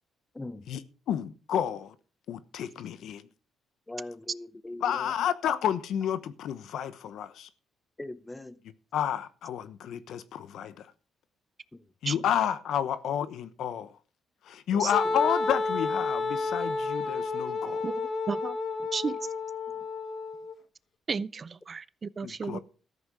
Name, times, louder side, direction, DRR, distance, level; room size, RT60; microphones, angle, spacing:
voice 1, 0.3-0.7 3.9-5.2 8.0-8.6 11.7-11.9 14.7-15.3 18.8-18.9 19.7-19.9, left 2 dB, 15° left, 1.0 m, -42 dB
voice 2, 1.1-1.9 2.3-3.2 4.8-7.5 8.9-10.9 12.0-13.9 14.5-17.9 22.2-22.6, left 9 dB, 75° left, 1.0 m, -30 dB
Wind instrument woodwind instrument, 14.9-20.5, left 3 dB, 50° left, 1.2 m, -31 dB
voice 3, 18.3-18.6 18.9-19.2 21.1-22.6, right 5 dB, 40° right, 0.5 m, -33 dB
14.0 x 8.0 x 4.8 m
cardioid pair, 90°, 0 cm